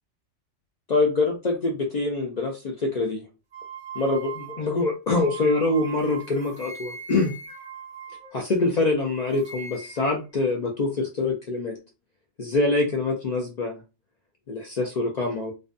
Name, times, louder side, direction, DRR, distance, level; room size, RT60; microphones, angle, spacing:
voice 1, 0.9-3.2 4.0-7.3 8.3-11.8 12.4-13.8 14.5-15.5, left 2 dB, 65° left, 1 dB, 0.4 m, -25 dB
sound 1, 3.5-8.8 9.1-10.2, right 5 dB, 45° right, 0.7 m, -41 dB
2.5 x 2.1 x 2.5 m, 0.29 s
omnidirectional pair, 1.2 m